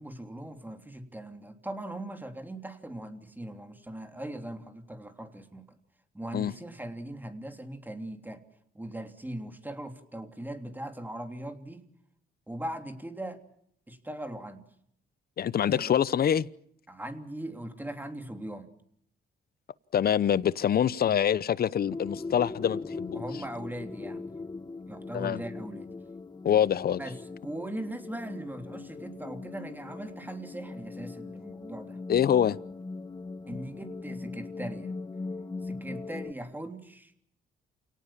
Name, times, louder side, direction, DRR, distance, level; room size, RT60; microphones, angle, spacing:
voice 1, 0.0-5.7 6.1-8.4 8.7-11.9 12.5-13.4 13.9-14.7 15.7-15.9 16.9-18.7 23.1-24.3 24.9-25.9 27.0-32.0 33.5-34.9 35.6-37.1, right 1 dB, 10° right, 3.2 m, -40 dB
voice 2, 15.4-16.5 19.9-23.2 25.1-25.4 26.4-27.0 32.1-32.6, left 9 dB, 50° left, 0.8 m, -25 dB
sound 1, 21.9-36.3, left 3 dB, 20° left, 0.9 m, -40 dB
28.5 x 18.0 x 7.4 m
cardioid pair, 90°, 20 cm